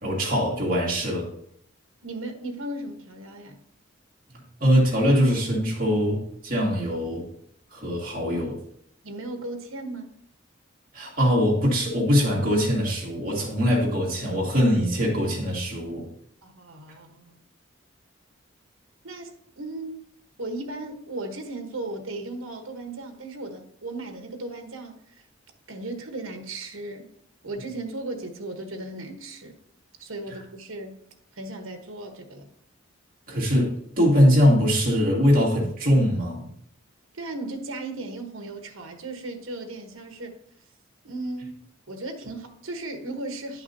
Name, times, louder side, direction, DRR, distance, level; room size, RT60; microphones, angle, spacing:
voice 1, 0.0-1.3 4.3-7.3 7.7-8.6 10.9-16.1 33.3-36.5, equal, 40° right, 2.4 m, -22 dB
voice 2, 2.0-3.6 9.0-10.2 16.4-17.4 19.0-20.1 20.4-25.0 25.7-27.1 27.4-29.6 30.0-30.9 31.4-32.5 37.1-40.4 41.0-41.6 41.9-43.6, right 2 dB, 80° right, 1.2 m, -36 dB
11.0 x 5.8 x 2.8 m
head